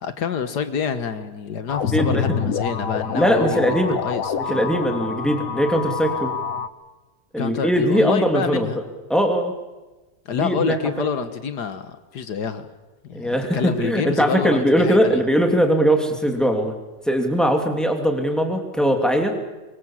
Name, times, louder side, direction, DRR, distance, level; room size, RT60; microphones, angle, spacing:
voice 1, 0.0-4.6 7.4-8.8 10.3-12.7 13.0-15.2, left 6 dB, 75° left, 10 dB, 1.9 m, -27 dB
sound 1, 1.7-6.7, left 7 dB, 55° left, 1.4 m, -27 dB
voice 2, 1.9-2.4 3.1-4.0 4.3-6.3 7.3-8.7 9.1-9.6 10.3-11.1 13.1-16.7 17.1-19.3, equal, ahead, 3 dB, 2.9 m, -20 dB
24.5 x 23.5 x 7.5 m, 1.1 s
omnidirectional pair, 1.8 m